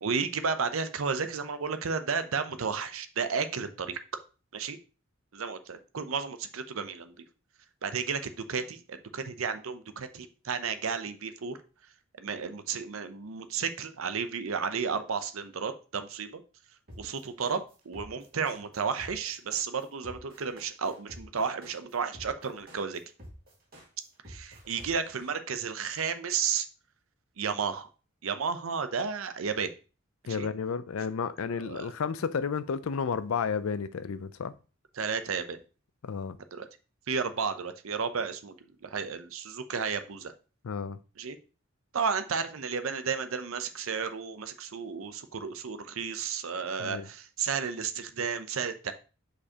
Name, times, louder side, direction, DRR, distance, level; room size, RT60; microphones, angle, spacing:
voice 1, 0.0-4.0 4.5-4.8 5.3-7.2 7.8-11.6 12.2-16.4 17.0-23.0 24.3-26.7 27.4-27.9 28.2-29.7 30.4-30.5 31.6-31.9 35.0-35.6 36.5-36.7 37.1-38.6 38.8-40.3 41.2-41.4 41.9-48.9, right 6 dB, 80° right, 0.7 m, -32 dB
sound 1, 16.9-25.3, equal, 45° right, 2.0 m, -49 dB
voice 2, 30.3-34.5 36.0-36.4 40.6-41.0 46.8-47.1, left 6 dB, 85° left, 0.5 m, -32 dB
6.5 x 5.1 x 2.9 m
head